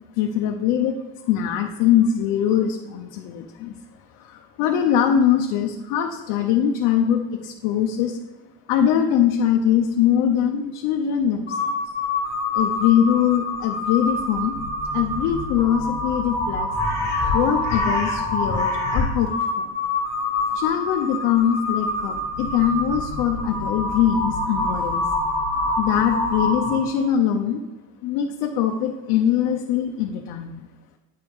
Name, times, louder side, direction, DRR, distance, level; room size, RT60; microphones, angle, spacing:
voice 1, 0.1-3.8 4.1-8.2 8.7-11.7 12.5-14.5 14.9-16.7 17.3-19.3 19.6-19.7 20.5-25.1 25.8-27.6 28.0-30.6, left 9 dB, 55° left, 2 dB, 0.6 m, -22 dB
Crow, 11.5-27.0, left 2 dB, 25° left, 1.4 m, -26 dB
9.4 x 4.7 x 3.5 m, 1.2 s
cardioid pair, 175°, 37 cm